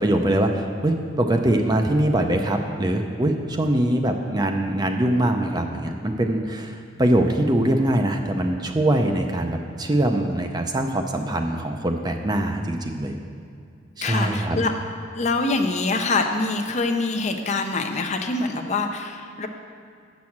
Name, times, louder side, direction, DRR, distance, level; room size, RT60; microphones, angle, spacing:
voice 1, 0.0-13.1 14.0-14.6, right 1 dB, 20° right, 4 dB, 0.5 m, -23 dB
voice 2, 14.0-14.7 15.1-19.5, left 3 dB, 35° left, 5 dB, 0.5 m, -24 dB
7.5 x 6.1 x 7.1 m, 2.3 s
head